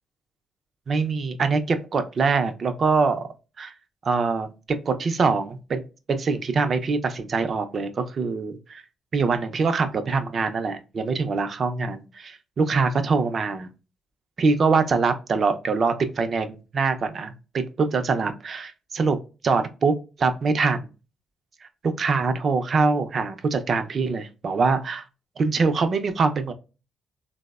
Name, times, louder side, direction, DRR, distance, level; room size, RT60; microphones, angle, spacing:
voice 1, 0.9-3.3 3.6-3.7 4.0-5.8 6.1-8.8 9.1-13.7 14.4-19.2 19.4-20.9 21.8-25.0 25.4-26.5, right 4 dB, 50° right, 9 dB, 0.4 m, -24 dB
3.3 x 2.0 x 2.2 m, 0.32 s
cardioid pair, 90°, 0 cm